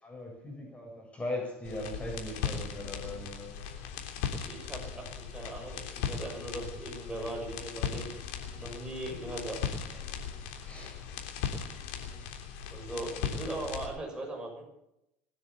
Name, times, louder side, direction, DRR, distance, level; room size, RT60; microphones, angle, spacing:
voice 1, 0.0-3.7 10.1-10.2 10.6-11.0, left 1 dB, 20° left, 7.6 m, -39 dB
sound 1, 1.6-13.9, left 7 dB, 75° left, 3.3 m, -38 dB
voice 2, 4.4-8.1 8.6-9.6 12.7-14.6, right 1 dB, 10° right, 6.5 m, -39 dB
21.0 x 9.9 x 6.9 m
hypercardioid pair, 85°, 7 cm